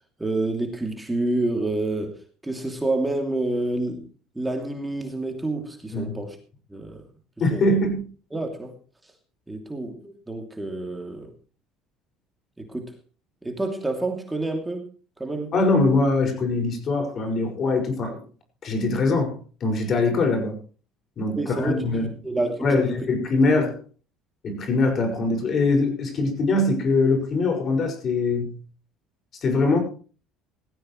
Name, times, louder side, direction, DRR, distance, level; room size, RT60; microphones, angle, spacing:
voice 1, 0.2-4.1 4.3-6.4 6.7-7.0 7.5-7.8 8.3-8.8 9.5-11.3 12.6-12.9 13.4-14.9 15.2-15.5 21.3-21.8 22.2-23.1 23.6-23.7, right 2 dB, 10° right, 3 dB, 2.9 m, -28 dB
voice 2, 7.4-8.0 15.5-18.2 18.6-20.6 21.2-22.1 22.6-23.8 24.4-28.6 29.4-29.8, left 3 dB, 45° left, 5 dB, 5.9 m, -22 dB
18.0 x 15.0 x 3.2 m, 0.38 s
supercardioid pair, 95°, 0 cm